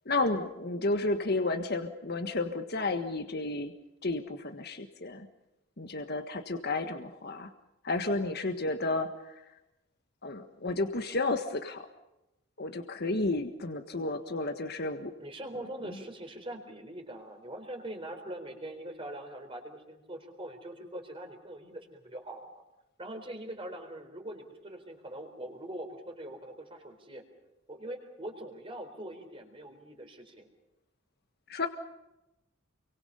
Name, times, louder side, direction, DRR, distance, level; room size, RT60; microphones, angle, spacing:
voice 1, 0.0-3.7 4.0-5.3 5.8-7.5 7.8-9.4 10.2-11.9 12.6-15.1 15.5-16.0 31.5-31.7, left 2 dB, 50° left, 7 dB, 1.5 m, -32 dB
voice 2, 15.2-22.6 23.0-27.2 27.7-30.5, right 1 dB, 25° right, 4 dB, 4.0 m, -42 dB
29.0 x 24.0 x 5.6 m, 0.93 s
head